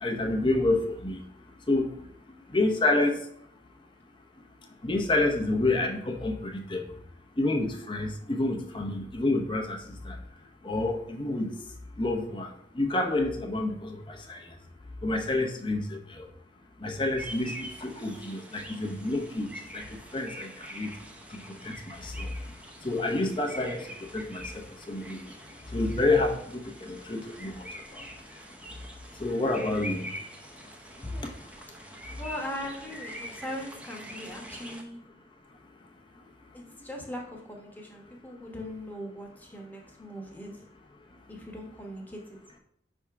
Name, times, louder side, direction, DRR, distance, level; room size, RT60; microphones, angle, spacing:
voice 1, 0.0-1.2 1.7-1.9 2.5-3.2 4.8-6.8 7.4-9.8 10.1-10.2 10.6-11.5 12.0-12.5 12.7-14.4 15.0-16.3 16.8-19.5 19.7-19.8 20.1-20.9 21.3-22.3 22.8-23.9 24.1-24.4 24.9-25.2 25.7-27.6 27.9-28.0 29.2-30.1, left 2 dB, 25° left, 3 dB, 0.8 m, -28 dB
sound 1, 17.2-34.8, equal, 5° right, 0.6 m, -44 dB
voice 2, 32.2-35.0 36.5-40.6 41.3-42.6, left 1 dB, 10° left, 0 dB, 1.1 m, -40 dB
5.7 x 3.5 x 5.8 m, 0.69 s
head